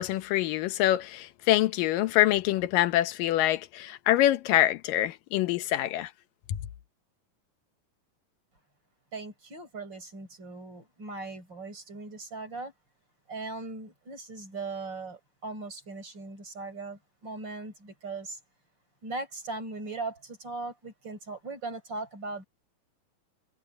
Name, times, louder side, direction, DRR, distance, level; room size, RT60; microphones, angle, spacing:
voice 1, 0.0-6.1 6.5-6.6, left 14 dB, 90° left, 2.6 m, -25 dB
voice 2, 9.1-12.7 13.3-18.4 19.0-22.4, right 3 dB, 30° right, 5.4 m, -39 dB
omnidirectional pair, 3.8 m